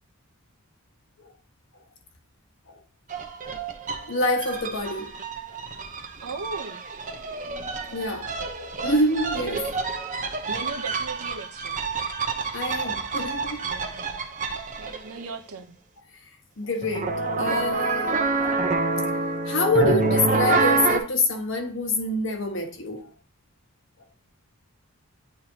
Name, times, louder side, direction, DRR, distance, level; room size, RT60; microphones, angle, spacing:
sound 1, 3.1-15.2 16.8-21.0, right 3 dB, 35° right, 0.8 m, -28 dB
voice 1, 3.9-5.1 5.5-5.6 7.9-8.3 8.8-9.9 12.5-13.7 16.6-18.3 19.5-23.1, left 2 dB, 60° left, 1.2 m, -26 dB
voice 2, 6.2-6.8 10.5-11.9 13.6-14.3 14.8-15.8, right 4 dB, 85° right, 0.8 m, -37 dB
9.6 x 4.2 x 2.8 m
head